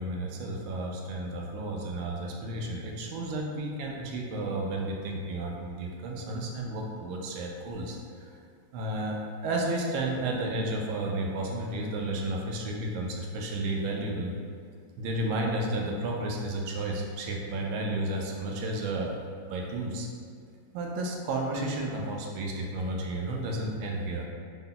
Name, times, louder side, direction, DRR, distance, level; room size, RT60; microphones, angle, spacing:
voice 1, 0.0-8.3 8.7-14.3 15.0-19.1 19.4-20.1 20.7-24.2, right 1 dB, 85° right, -1 dB, 1.4 m, -32 dB
3.9 x 2.1 x 3.7 m, 2.2 s
omnidirectional pair, 2.1 m